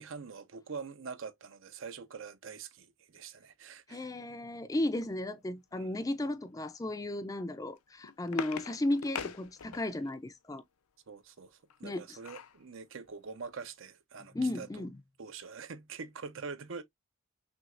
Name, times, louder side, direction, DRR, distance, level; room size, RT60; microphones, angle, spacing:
voice 1, 0.0-4.1 5.7-6.0 11.1-14.9 15.2-16.8, right 5 dB, 65° right, 0.6 m, -44 dB
voice 2, 3.9-10.6 11.8-12.2 14.2-15.0, left 1 dB, 15° left, 0.3 m, -35 dB
sound 1, 7.7-10.2 11.7-12.6 13.1-13.2 13.5-13.7, left 6 dB, 90° left, 0.6 m, -42 dB
6.2 x 2.8 x 2.5 m
head